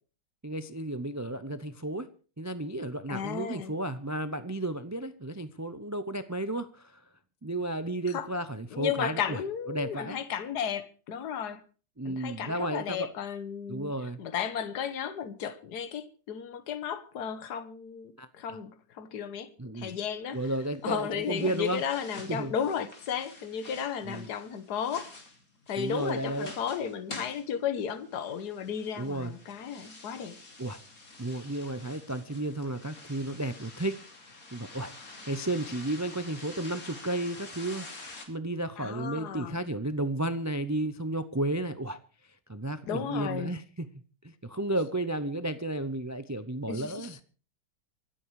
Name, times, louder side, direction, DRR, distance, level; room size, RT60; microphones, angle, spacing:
voice 1, 0.4-2.1 2.4-7.0 7.4-9.4 9.7-10.2 12.0-13.1 13.7-14.2 18.2-18.6 19.6-19.9 20.3-21.8 22.3-22.5 24.1-24.3 25.8-26.5 29.0-29.3 30.6-30.8 31.2-34.9 35.3-37.9 38.3-42.0 42.5-43.9 44.2-47.2, right 1 dB, 25° right, 0.3 m, -33 dB
voice 2, 3.1-3.7 8.1-8.3 8.7-11.6 12.0-13.9 14.2-20.4 20.8-25.1 25.7-30.4 38.8-39.6 42.9-43.5 46.7-47.2, left 8 dB, 75° left, 1.7 m, -34 dB
sound 1, 20.3-38.3, left 2 dB, 55° left, 3.4 m, -48 dB
25.5 x 8.5 x 4.8 m
omnidirectional pair, 1.8 m